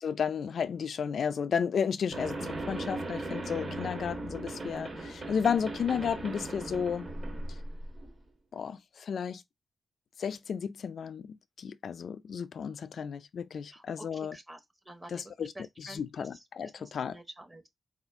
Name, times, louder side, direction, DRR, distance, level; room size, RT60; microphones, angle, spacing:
voice 1, 0.0-7.1 8.5-9.4 10.2-14.4 15.1-15.5 15.8-17.2, left 7 dB, 80° left, 0.4 m, -33 dB
sound 1, 2.1-8.2, right 2 dB, 45° right, 1.3 m, -38 dB
voice 2, 13.7-16.4 16.8-17.7, right 1 dB, 20° right, 0.8 m, -49 dB
4.2 x 2.4 x 3.4 m
wide cardioid pair, 150°, 0 cm